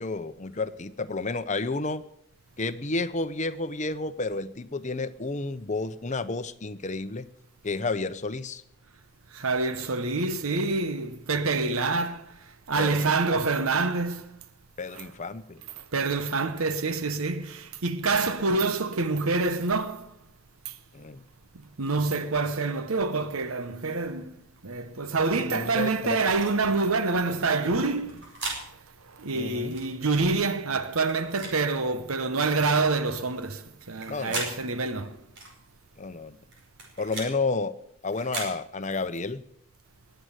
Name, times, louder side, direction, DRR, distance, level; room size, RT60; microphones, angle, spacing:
voice 1, 0.0-2.0 2.6-7.3 7.6-8.6 12.8-13.5 14.8-15.6 20.9-21.2 25.4-26.2 29.3-29.8 34.1-34.4 36.0-36.4 37.0-37.7 38.0-39.4, left 3 dB, 35° left, 0.8 m, -31 dB
voice 2, 9.3-14.4 14.9-15.1 15.8-20.1 20.6-20.8 21.5-24.4 24.6-28.7 29.0-35.2, right 3 dB, 85° right, 1.0 m, -27 dB
sound 1, 26.3-26.5 27.8-28.6 29.7-29.9 31.0-31.6 32.4-32.6 33.8-34.5 35.4-35.5 36.5-37.3 38.1-38.5, right 3 dB, 55° right, 5.1 m, -36 dB
20.5 x 7.9 x 8.1 m
head